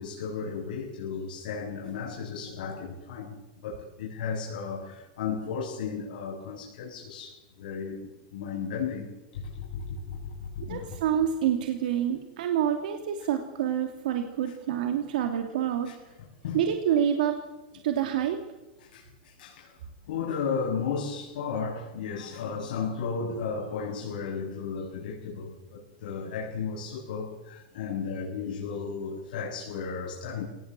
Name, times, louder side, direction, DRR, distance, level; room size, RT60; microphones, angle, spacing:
voice 1, 0.0-3.4 3.6-8.0 8.3-9.1 9.6-10.3 10.7-10.9 14.4-14.5 15.9-16.0 16.4-16.6 18.9-19.0 19.4-19.7 20.1-30.4, left 5 dB, 75° left, -4 dB, 7.1 m, -34 dB
voice 2, 10.7-15.9 16.5-17.4 17.8-18.4, right 9 dB, 70° right, 5 dB, 2.6 m, -27 dB
23.5 x 19.0 x 7.6 m, 1.0 s
supercardioid pair, 175°, 5 cm